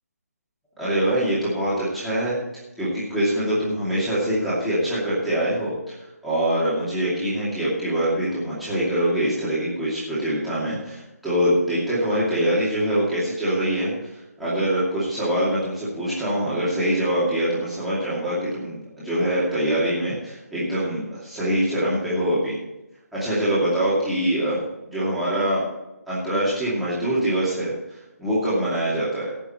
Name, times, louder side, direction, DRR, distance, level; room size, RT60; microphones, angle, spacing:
voice 1, 0.8-2.4 2.8-5.7 6.2-13.9 14.4-22.5 23.1-24.6 24.9-25.6 26.1-27.7 28.2-29.3, right 1 dB, ahead, -12 dB, 2.5 m, -24 dB
17.5 x 6.8 x 4.4 m, 0.96 s
hypercardioid pair, 175°, 9 cm